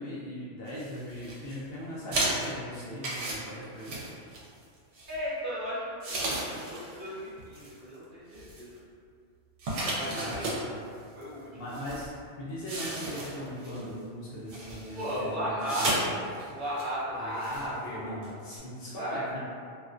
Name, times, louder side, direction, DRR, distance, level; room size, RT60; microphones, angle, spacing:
voice 1, 0.0-3.9 10.1-10.8 11.5-12.1 12.4-15.7 16.0-16.2 17.1-19.4, equal, 60° left, -8 dB, 0.7 m, -38 dB
sound 1, 0.7-1.6 2.1-4.6 5.0-5.2 6.0-7.1 7.4-7.7 8.3-8.8 9.6-10.6 11.2-11.3 11.7-12.1 12.7-13.8 14.5-15.2 15.6-16.0 16.3-16.5 16.8-16.9 17.4-17.7 18.2-18.3 18.5-18.6, right 2 dB, 80° right, 0.9 m, -34 dB
voice 2, 5.1-8.7 9.8-10.7 11.1-11.5 14.9-16.0 16.5-18.1 19.0-19.2, equal, 50° right, -10 dB, 0.7 m, -36 dB
2.4 x 2.2 x 2.4 m, 2.3 s
omnidirectional pair, 1.2 m